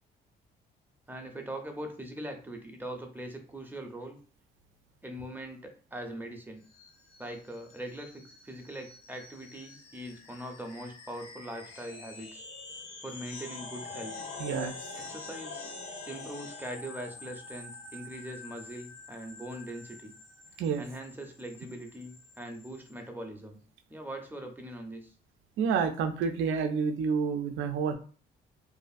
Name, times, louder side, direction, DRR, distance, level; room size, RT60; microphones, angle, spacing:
voice 1, 1.1-4.2 5.0-6.6 7.2-12.5 13.0-14.1 15.0-15.8 16.1-20.1 20.8-23.6 23.9-25.1, right 1 dB, 10° right, 3 dB, 0.6 m, -41 dB
sound 1, 6.7-22.9, left 3 dB, 90° left, 0.8 m, -46 dB
voice 2, 14.4-14.7 20.6-20.8 25.6-27.9, right 6 dB, 75° right, 7 dB, 0.4 m, -29 dB
2.6 x 2.4 x 2.4 m, 0.40 s
cardioid pair, 90°, 20 cm